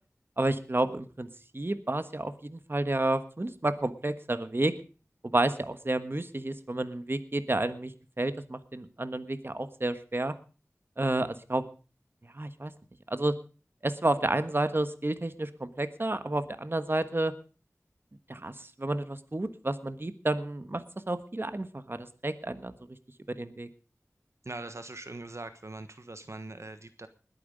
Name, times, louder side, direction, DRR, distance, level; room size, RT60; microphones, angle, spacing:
voice 1, 0.4-1.3 1.5-4.7 5.2-7.9 8.2-10.3 11.0-11.6 12.2-12.7 13.1-13.3 13.8-17.3 18.3-22.7 23.3-23.7, right 2 dB, 40° right, 11 dB, 1.3 m, -30 dB
voice 2, 24.4-27.1, right 2 dB, 60° right, 10 dB, 1.2 m, -42 dB
20.5 x 9.5 x 5.1 m, 0.36 s
wide cardioid pair, 50°, 6 cm